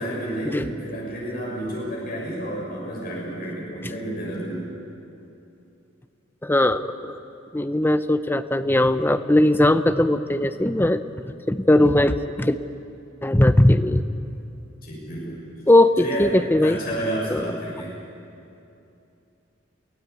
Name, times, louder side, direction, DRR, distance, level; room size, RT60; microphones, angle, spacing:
voice 1, 0.0-4.6 14.8-15.4 16.0-17.9, right 1 dB, 50° left, -4 dB, 6.7 m, -30 dB
voice 2, 6.4-7.2 7.5-11.0 11.5-12.6 13.2-14.0 15.7-16.8 17.3-17.4, left 1 dB, 10° left, 11 dB, 0.6 m, -19 dB
23.5 x 16.0 x 8.3 m, 2.7 s
head